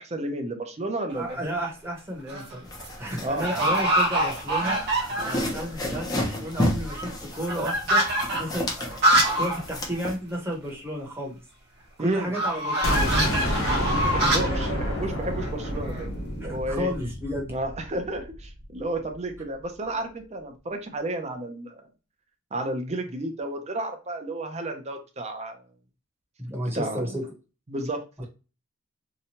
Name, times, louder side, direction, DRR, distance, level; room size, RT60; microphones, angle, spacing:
voice 1, 0.0-1.4 3.2-3.5 12.0-12.3 13.8-16.1 16.4-16.9 17.5-21.9 22.5-25.7 26.7-27.2 27.7-28.3, right 1 dB, 35° right, 4 dB, 0.6 m, -32 dB
sound 1, 1.1-1.5 2.1-2.5 2.8-2.9 3.4-5.6 5.9-6.0 6.2-9.6 9.9-10.0 10.3-10.4 12.3-16.1, right 1 dB, 55° right, 0.9 m, -25 dB
voice 2, 1.2-2.7 3.0-4.8 5.2-8.0 8.4-11.4 12.0-13.3 14.1-14.7 16.4-17.5 26.4-27.2, equal, 10° right, -2 dB, 0.9 m, -32 dB
sound 2, 2.7-10.2, left 1 dB, 20° left, 0.6 m, -32 dB
sound 3, 12.8-18.6, left 1 dB, 75° left, 1.0 m, -29 dB
2.8 x 2.3 x 2.9 m, 0.32 s
head